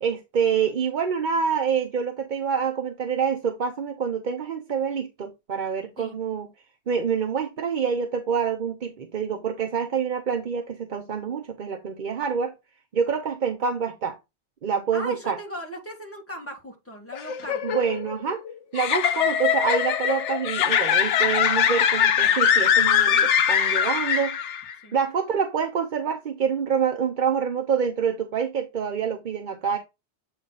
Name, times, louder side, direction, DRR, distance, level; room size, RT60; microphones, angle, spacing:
voice 1, 0.0-6.5 6.9-12.5 12.9-14.2 14.6-15.4 17.6-18.4 18.7-24.4 24.9-29.8, right 6 dB, 50° right, 0.8 m, -26 dB
voice 2, 14.9-17.6 24.8-24.9, equal, 10° left, 1.8 m, -37 dB
sound 1, 17.1-24.7, left 8 dB, 90° left, 1.0 m, -22 dB
7.9 x 3.4 x 4.0 m
omnidirectional pair, 1.2 m